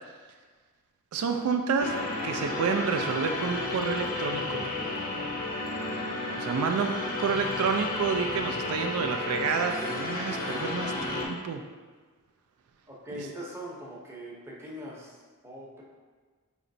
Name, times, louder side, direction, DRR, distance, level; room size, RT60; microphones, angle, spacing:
voice 1, 1.1-4.7 6.4-11.6 13.2-13.3, right 5 dB, 90° right, 5 dB, 0.3 m, -29 dB
sound 1, 1.8-11.3, left 2 dB, 40° left, 0.5 m, -32 dB
voice 2, 12.9-15.8, equal, 10° right, -4 dB, 0.6 m, -41 dB
4.2 x 2.9 x 2.6 m, 1.5 s
head